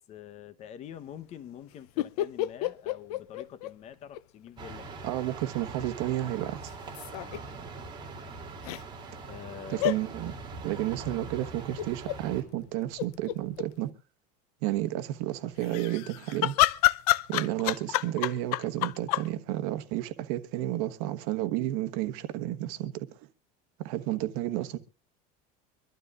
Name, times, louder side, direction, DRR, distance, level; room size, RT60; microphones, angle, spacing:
voice 1, 0.0-4.9 5.6-5.7 7.1-7.4 9.3-9.9 24.0-24.2, left 9 dB, 35° left, 0.9 m, -46 dB
sound 1, 2.0-4.2 4.5-4.6 6.7-7.4 8.6-8.8 9.8-10.0 11.8-12.2 12.7-12.8 12.9-13.7 15.6-19.3, left 16 dB, 85° left, 0.6 m, -28 dB
sound 2, 4.6-12.4, right 4 dB, 25° right, 2.8 m, -42 dB
voice 2, 5.0-6.7 9.7-10.3 10.6-13.9 14.6-16.5 17.3-23.1 23.8-24.8, right 14 dB, 70° right, 1.2 m, -31 dB
24.5 x 12.0 x 2.4 m
cardioid pair, 145°, 19 cm